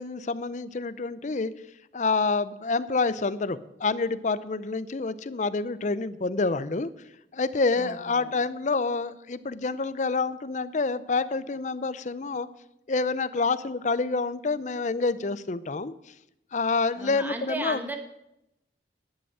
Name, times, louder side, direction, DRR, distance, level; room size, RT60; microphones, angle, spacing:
voice 1, 0.0-1.5 1.9-6.9 7.3-12.5 12.9-15.9 16.5-18.0, left 3 dB, 45° left, 15 dB, 0.6 m, -27 dB
voice 2, 7.8-8.3 17.0-18.0, right 1 dB, 10° right, 4 dB, 1.3 m, -35 dB
11.0 x 7.9 x 7.8 m, 0.85 s
head